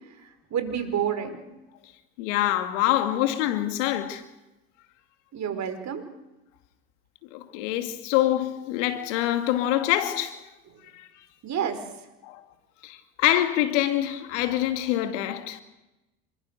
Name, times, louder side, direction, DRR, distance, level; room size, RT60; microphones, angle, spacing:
voice 1, 0.5-1.4 5.3-6.0 11.4-11.8, right 8 dB, 50° right, 5.3 m, -28 dB
voice 2, 2.2-4.2 7.3-10.4 10.9-11.1 12.2-12.4 12.8-15.6, left 13 dB, 80° left, 2.5 m, -25 dB
28.5 x 23.0 x 6.7 m
hypercardioid pair, 75°, 36 cm